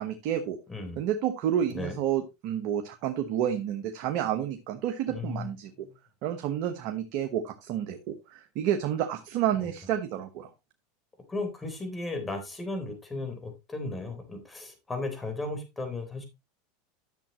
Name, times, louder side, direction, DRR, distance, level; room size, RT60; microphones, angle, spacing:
voice 1, 0.0-0.6 1.0-5.7 6.2-10.5, right 10 dB, 60° right, 7 dB, 1.0 m, -30 dB
voice 2, 0.7-1.0 1.7-2.0 5.1-5.5 9.6-9.7 11.3-16.2, left 2 dB, 15° left, 5 dB, 3.7 m, -35 dB
11.0 x 7.3 x 2.9 m, 0.25 s
hypercardioid pair, 100°, 0 cm